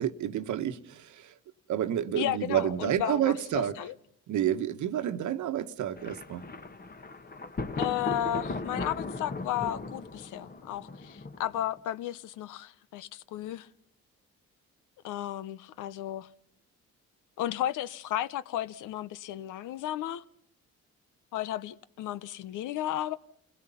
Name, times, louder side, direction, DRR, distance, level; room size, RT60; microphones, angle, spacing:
voice 1, 0.0-1.3 1.7-3.7 4.3-6.4, right 10 dB, 75° right, 1.2 m, -29 dB
voice 2, 2.2-3.9 7.8-13.7 15.0-16.3 17.4-20.2 21.3-23.2, left 12 dB, 85° left, 0.8 m, -34 dB
Thunder, 6.0-11.8, left 3 dB, 30° left, 1.6 m, -37 dB
28.5 x 17.0 x 5.5 m
cardioid pair, 90°, 30 cm